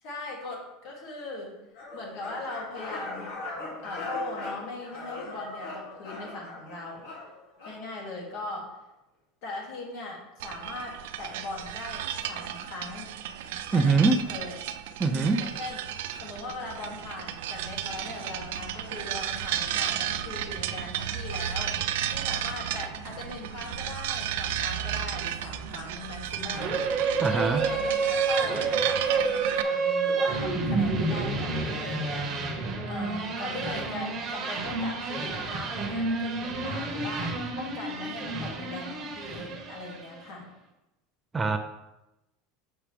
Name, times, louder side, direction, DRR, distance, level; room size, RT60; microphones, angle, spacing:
voice 1, 0.0-1.6 1.9-3.3 3.8-7.1 7.6-8.8 9.4-13.1 13.7-14.5 15.1-15.8 16.2-26.8 27.2-32.6 32.9-40.5, left 2 dB, 55° left, -2 dB, 2.3 m, -39 dB
sound 1, 1.7-7.8, left 2 dB, 80° left, 2.4 m, -40 dB
sound 2, 10.4-29.6, right 10 dB, 80° right, 0.4 m, -33 dB
voice 2, 13.7-14.2 15.0-15.4 27.2-27.6 41.3-41.6, right 4 dB, 15° right, 6 dB, 0.4 m, -23 dB
sound 3, 26.5-40.2, right 4 dB, 30° right, 1.1 m, -29 dB
7.1 x 5.9 x 3.3 m, 0.95 s
supercardioid pair, 160°, 0 cm